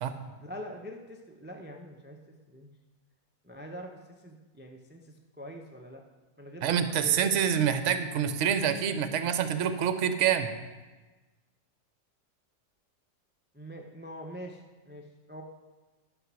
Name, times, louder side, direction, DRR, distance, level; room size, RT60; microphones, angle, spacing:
voice 1, 0.4-2.7 3.4-6.0 6.4-7.2 13.5-15.4, equal, 15° right, 2 dB, 0.3 m, -44 dB
voice 2, 6.6-10.5, right 8 dB, 55° right, 9 dB, 0.9 m, -26 dB
11.5 x 5.9 x 6.1 m, 1.2 s
omnidirectional pair, 1.7 m